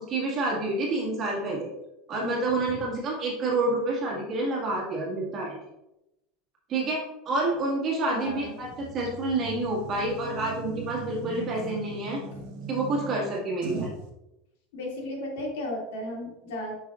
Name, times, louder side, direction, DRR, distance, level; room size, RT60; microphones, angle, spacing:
voice 1, 0.0-1.7 2.1-5.6 6.7-7.0 7.2-8.7 8.9-12.2 12.7-13.9, right 2 dB, 25° right, -3 dB, 1.7 m, -28 dB
voice 2, 8.1-8.5 12.3-12.4 14.7-16.7, left 1 dB, 75° left, -2 dB, 2.3 m, -35 dB
sound 1, 8.2-14.1, right 4 dB, 55° right, 1.0 m, -39 dB
8.7 x 5.7 x 2.4 m, 0.90 s
supercardioid pair, 175°, 0 cm